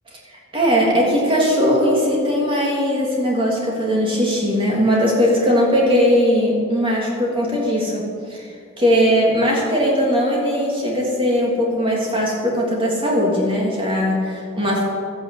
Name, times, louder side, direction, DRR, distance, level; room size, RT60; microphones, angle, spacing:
voice 1, 0.5-8.4 8.8-14.8, equal, 25° right, -3 dB, 3.1 m, -19 dB
13.0 x 9.1 x 7.9 m, 2.3 s
head